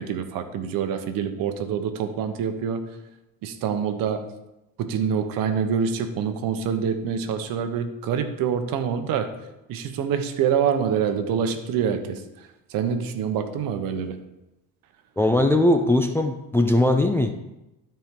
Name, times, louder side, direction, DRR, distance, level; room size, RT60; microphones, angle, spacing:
voice 1, 0.0-2.8 3.4-4.2 4.8-9.3 9.7-12.2 12.7-14.2, right 7 dB, 65° right, 8 dB, 1.0 m, -26 dB
voice 2, 15.2-17.3, left 1 dB, 5° left, 5 dB, 0.4 m, -20 dB
12.5 x 4.5 x 3.7 m, 0.93 s
cardioid pair, 120°, 37 cm